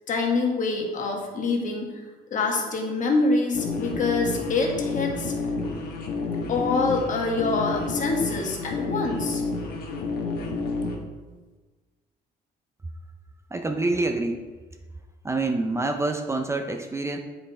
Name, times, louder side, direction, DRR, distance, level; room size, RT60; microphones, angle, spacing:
voice 1, 0.1-1.9 2.3-5.3 6.5-9.4, left 3 dB, 50° left, 1 dB, 1.5 m, -25 dB
sound 1, 3.5-11.0, left 3 dB, 65° left, 1.2 m, -30 dB
voice 2, 13.5-14.5 15.2-17.2, right 2 dB, 15° right, 5 dB, 0.5 m, -26 dB
7.9 x 5.2 x 4.2 m, 1.3 s
cardioid pair, 110°, 17 cm